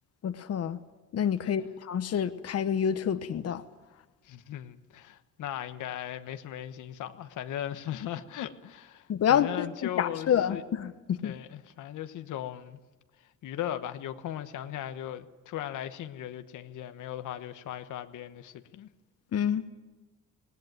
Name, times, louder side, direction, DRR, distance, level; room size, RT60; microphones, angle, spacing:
voice 1, 0.2-0.8 1.1-3.6 9.1-11.3 19.3-19.6, left 8 dB, 55° left, 1.1 m, -28 dB
voice 2, 1.4-1.7 4.2-10.6 11.2-12.8 13.4-18.9, left 11 dB, 80° left, 1.2 m, -38 dB
19.0 x 18.0 x 9.2 m
cardioid pair, 90°, 30 cm